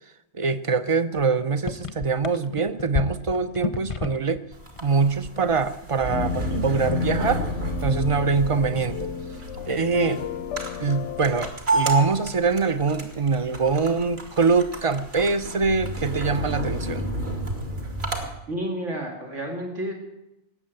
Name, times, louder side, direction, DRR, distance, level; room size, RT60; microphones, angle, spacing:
voice 1, 0.3-4.4 4.8-7.4 7.8-9.1 9.7-10.2 10.8-17.1, right 4 dB, 35° right, 12 dB, 0.6 m, -24 dB
sound 1, 1.2-1.3 1.5-4.4 4.7-5.7 6.0-6.3, left 5 dB, 35° left, 0.7 m, -31 dB
sound 2, 4.5-18.3, right 2 dB, 60° right, 2.5 m, -31 dB
sound 3, 6.1-11.5, left 8 dB, 80° left, 1.1 m, -32 dB
voice 2, 18.5-19.9, right 1 dB, 90° right, 1 dB, 2.5 m, -30 dB
18.5 x 7.6 x 9.0 m, 0.91 s
omnidirectional pair, 1.2 m